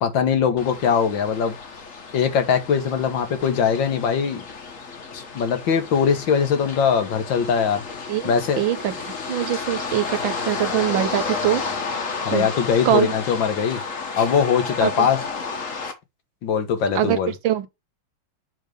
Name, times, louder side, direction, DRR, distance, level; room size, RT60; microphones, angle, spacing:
voice 1, 0.0-1.6 2.1-4.4 5.1-7.8 8.2-8.6 12.2-13.8 14.1-15.2 16.4-17.3, left 7 dB, 75° left, 1.9 m, -21 dB
sound 1, 0.6-15.9, left 4 dB, 45° left, 1.5 m, -32 dB
voice 2, 8.1-11.6 12.3-12.5 12.8-13.1 14.8-15.1 16.9-17.7, right 11 dB, 80° right, 1.6 m, -23 dB
7.1 x 3.7 x 5.0 m
omnidirectional pair, 2.1 m